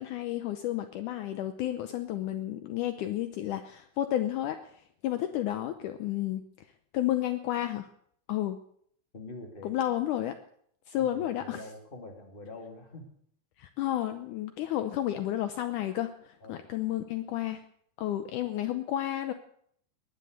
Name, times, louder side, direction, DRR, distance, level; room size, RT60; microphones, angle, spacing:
voice 1, 0.0-6.4 6.9-7.9 8.3-8.6 9.6-10.4 10.9-11.7 13.6-17.6 18.0-19.3, left 12 dB, 75° left, 9 dB, 2.1 m, -31 dB
voice 2, 9.1-9.8 11.0-13.0 16.4-16.6, left 2 dB, 15° left, 2 dB, 2.5 m, -45 dB
18.5 x 11.5 x 6.7 m, 0.66 s
omnidirectional pair, 3.9 m